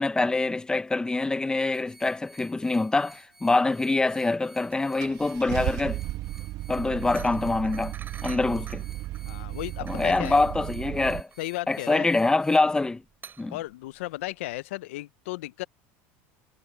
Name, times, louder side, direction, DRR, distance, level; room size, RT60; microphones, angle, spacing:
voice 1, 0.0-6.0 6.7-7.9 8.2-8.8 9.8-11.3 11.7-13.0 13.4-13.6, left 3 dB, 10° left, 0.9 m, -25 dB
sound 1, 1.7-12.6, right 1 dB, 5° right, 5.1 m, -53 dB
Car / Engine starting, 4.3-4.4 5.0-11.2, right 16 dB, 55° right, 1.7 m, -35 dB
sound 2, 4.6-14.6, right 6 dB, 30° right, 7.9 m, -50 dB
voice 2, 9.2-10.4 11.4-12.1 13.5-15.6, left 18 dB, 85° left, 0.5 m, -35 dB
supercardioid pair, 100°, 7 cm